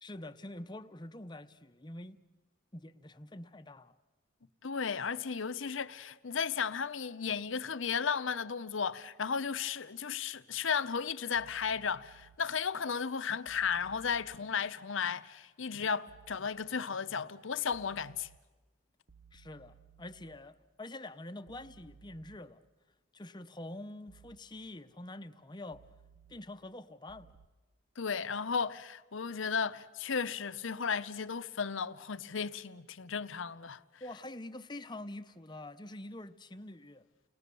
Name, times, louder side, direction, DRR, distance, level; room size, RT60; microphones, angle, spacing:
voice 1, 0.0-2.2 2.7-3.9 19.3-22.6 23.1-25.8 26.3-27.3 34.0-37.0, left 1 dB, 20° left, 0.7 m, -46 dB
voice 2, 4.6-18.3 28.0-33.8, left 6 dB, 70° left, 0.8 m, -34 dB
sound 1, 11.3-12.4 13.5-14.4 16.1-16.4 17.7-18.4 19.1-20.4 21.5-22.4 24.1-24.4 25.7-26.4 27.1-27.5, right 6 dB, 65° right, 1.0 m, -59 dB
30.0 x 20.0 x 6.9 m
head